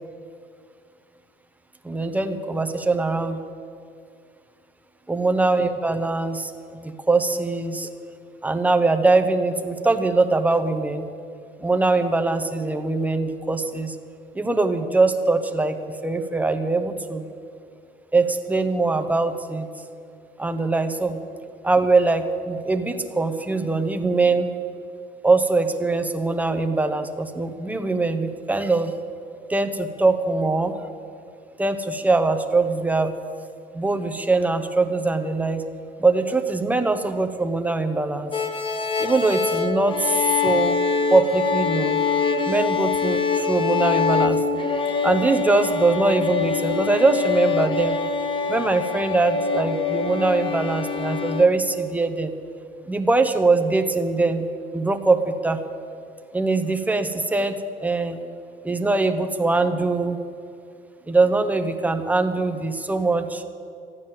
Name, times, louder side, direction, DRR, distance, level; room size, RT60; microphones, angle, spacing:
voice 1, 1.8-3.4 5.1-7.9 8.4-11.1 11.6-14.0 14.3-17.3 18.1-19.7 20.4-21.2 21.6-24.5 25.2-28.9 29.5-30.7 31.6-33.1 33.7-35.6 36.0-38.3 39.0-40.8 41.1-42.0 42.5-44.4 45.0-48.0 48.5-52.3 52.9-54.5 54.7-55.6 56.3-58.2 58.6-60.2 61.1-63.4, right 3 dB, 10° right, 7 dB, 0.9 m, -22 dB
sound 1, 38.3-51.5, left 5 dB, 30° left, 1.1 m, -24 dB
13.5 x 9.4 x 7.5 m, 2.4 s
cardioid pair, 110°, 17 cm